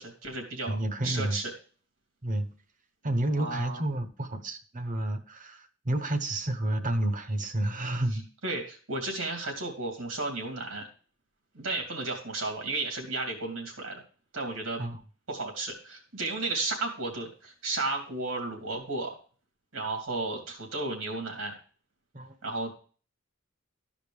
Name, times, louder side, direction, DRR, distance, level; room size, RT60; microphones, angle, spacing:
voice 1, 0.0-0.8 1.0-1.5 3.3-3.8 8.4-10.8 11.5-14.0 14.3-14.8 15.3-19.1 19.7-21.6 22.4-22.7, right 2 dB, 85° right, 2.8 m, -33 dB
voice 2, 0.7-1.4 2.2-2.5 3.0-8.2 14.8-15.0 22.1-22.3, right 1 dB, 40° right, 1.0 m, -30 dB
13.5 x 5.1 x 3.4 m
head